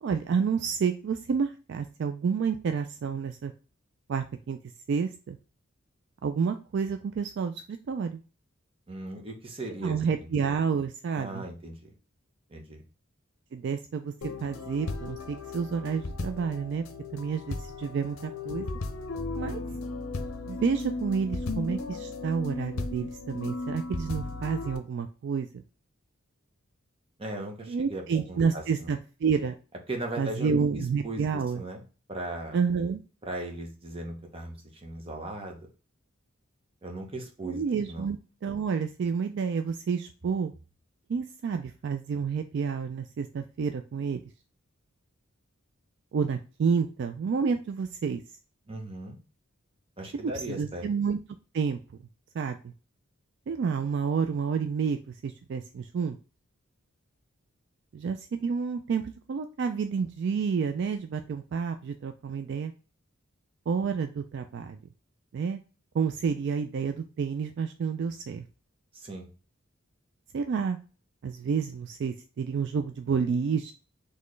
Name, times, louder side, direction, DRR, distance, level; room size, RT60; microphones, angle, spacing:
voice 1, 0.0-3.5 4.1-4.6 4.9-5.4 6.2-8.2 9.8-11.4 13.5-16.8 17.1-18.7 19.3-19.6 20.5-25.6 27.6-29.5 30.2-31.6 32.5-33.0 37.4-40.5 41.1-44.2 46.1-48.2 50.2-51.2 51.5-51.8 52.3-52.7 53.5-56.2 57.9-62.7 63.7-64.8 65.3-65.6 65.9-68.5 70.3-70.8 71.2-73.7, right 6 dB, 55° right, 8 dB, 0.3 m, -29 dB
voice 2, 8.9-10.0 11.2-11.9 12.5-12.8 27.2-28.9 29.9-31.8 32.1-32.6 33.2-35.7 36.8-37.6 37.9-38.1 48.7-49.2 50.0-50.8 68.9-69.3, right 1 dB, 25° right, 2 dB, 0.9 m, -38 dB
sound 1, 14.2-24.8, left 3 dB, 80° left, 0.6 m, -36 dB
4.2 x 3.1 x 3.1 m, 0.35 s
head